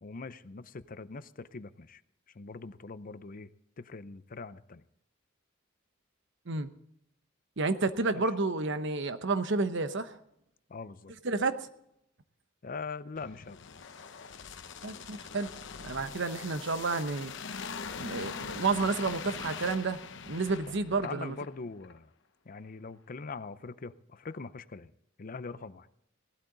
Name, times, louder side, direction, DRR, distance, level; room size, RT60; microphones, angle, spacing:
voice 1, 0.0-2.0 2.3-3.5 3.8-4.8 8.1-8.3 10.7-11.1 12.6-13.6 20.7-20.8 21.0-22.1 22.5-24.9 25.2-25.9, left 4 dB, 45° left, 14 dB, 0.6 m, -42 dB
voice 2, 7.6-10.2 11.2-11.7 14.8-15.5 15.8-17.3 18.0-21.3, right 3 dB, 65° right, 11 dB, 1.0 m, -30 dB
sound 1, 13.2-21.5 21.8-22.0, left 5 dB, 65° left, 0.9 m, -42 dB
17.5 x 12.5 x 3.9 m, 0.77 s
head